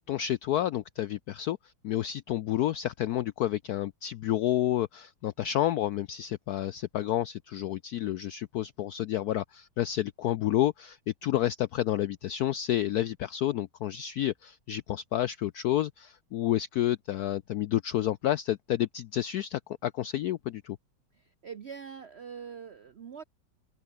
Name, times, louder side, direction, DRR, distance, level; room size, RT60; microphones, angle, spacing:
voice 1, 0.1-1.6 1.8-20.8, left 12 dB, 80° left, 0.8 m, -30 dB
voice 2, 21.1-23.2, right 7 dB, 65° right, 0.6 m, -43 dB
open air
omnidirectional pair, 2.2 m